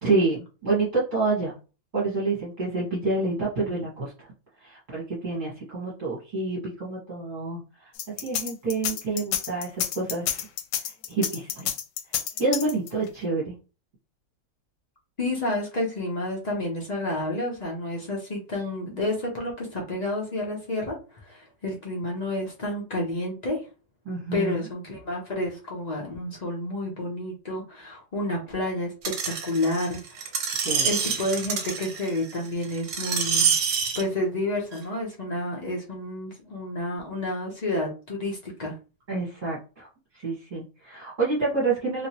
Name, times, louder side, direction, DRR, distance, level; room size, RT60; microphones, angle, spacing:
voice 1, 0.0-1.5 1.9-4.3 4.6-7.9 8.2-10.2 10.8-11.7 12.4-13.5 24.0-24.6 30.6-30.9 39.1-39.9 40.1-42.1, right 3 dB, 30° right, -7 dB, 1.2 m, -28 dB
sound 1, 8.0-13.1, left 10 dB, 85° left, 1.3 m, -29 dB
voice 2, 15.2-23.6 24.3-28.9 29.2-30.3 30.8-33.5 33.9-38.7, left 1 dB, 70° left, -2 dB, 0.4 m, -30 dB
Screech, 29.0-34.0 34.7-34.8, right 6 dB, 60° right, 1.0 m, -27 dB
3.0 x 2.8 x 2.8 m, 0.32 s
omnidirectional pair, 2.0 m